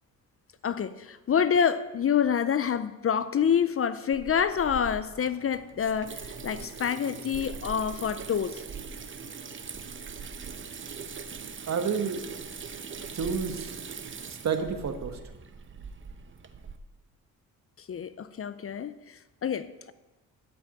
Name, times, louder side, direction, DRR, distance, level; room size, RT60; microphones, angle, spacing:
voice 1, 0.6-8.6 17.9-19.9, left 7 dB, 40° left, 0.6 m, -27 dB
Water tap faucet / Sink (filling or washing), 4.1-16.8, right 5 dB, 35° right, 0.9 m, -41 dB
voice 2, 11.7-12.2 13.1-14.0 14.3-15.2, right 6 dB, 55° right, 1.4 m, -30 dB
12.0 x 6.0 x 8.9 m
cardioid pair, 90°, 33 cm